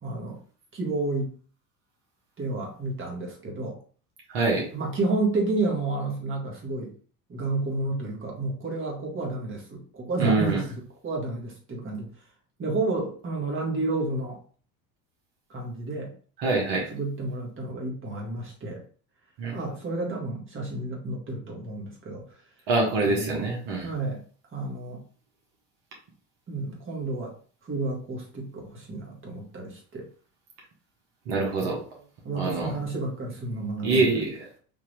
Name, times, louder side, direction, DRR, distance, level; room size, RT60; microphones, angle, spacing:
voice 1, 0.0-0.4 0.7-1.3 2.4-3.8 4.7-6.9 7.3-12.1 12.6-14.4 15.5-16.1 16.9-18.8 19.5-22.4 23.0-23.5 23.8-24.2 24.5-25.0 26.5-27.3 27.6-30.1 31.6-31.7 32.2-34.2, right 2 dB, 25° right, 0 dB, 1.6 m, -31 dB
voice 2, 4.3-4.7 10.2-10.6 16.4-16.9 19.4-19.6 22.7-23.9 31.3-31.8 32.3-32.7 33.8-34.5, right 3 dB, 60° right, -1 dB, 1.5 m, -25 dB
3.6 x 2.8 x 3.3 m, 0.42 s
hypercardioid pair, 75°, 48 cm